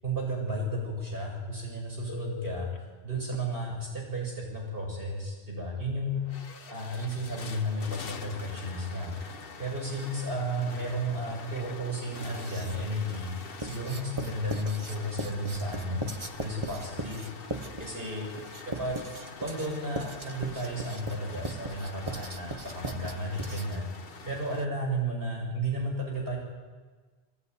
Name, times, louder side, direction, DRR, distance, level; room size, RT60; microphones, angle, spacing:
voice 1, 0.0-2.7 3.0-6.3 6.7-9.1 9.6-13.3 13.6-16.0 16.4-17.2 17.8-18.3 18.6-19.0 19.4-23.9 24.2-26.4, right 1 dB, 65° right, -1 dB, 7.9 m, -33 dB
Telephone, 2.1-2.8 3.3-3.4 5.2-5.3 5.7-5.9 11.2-12.0 19.1-19.3, left 9 dB, 80° left, 1.7 m, -44 dB
sound 1, 5.7-5.8 6.1-24.7, left 5 dB, 65° left, 1.3 m, -45 dB
Writing, 12.2-13.0 13.6-23.9, right 2 dB, 30° right, 1.3 m, -39 dB
22.0 x 17.0 x 9.7 m, 1.4 s
omnidirectional pair, 1.1 m